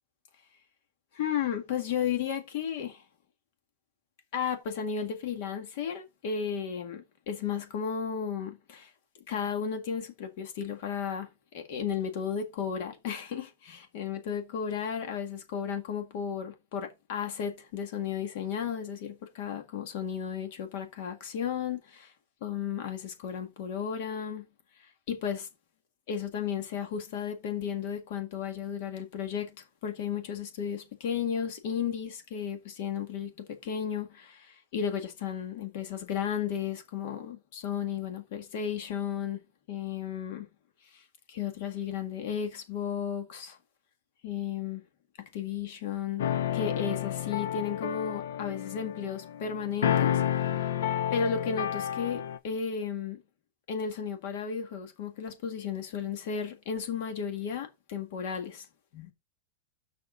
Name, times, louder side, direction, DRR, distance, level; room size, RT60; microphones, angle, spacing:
voice 1, 1.1-3.0 4.3-8.9 9.3-11.3 11.5-22.1 22.4-24.5 24.8-25.5 26.1-39.4 39.7-40.5 40.9-43.6 44.2-44.8 45.2-46.3 46.5-50.7 51.1-53.2 53.7-58.7 58.9-59.1, left 7 dB, 50° left, 1.8 m, -34 dB
sound 1, 46.2-52.4, left 10 dB, 75° left, 0.9 m, -30 dB
6.8 x 6.1 x 5.0 m
supercardioid pair, 165°, 0 cm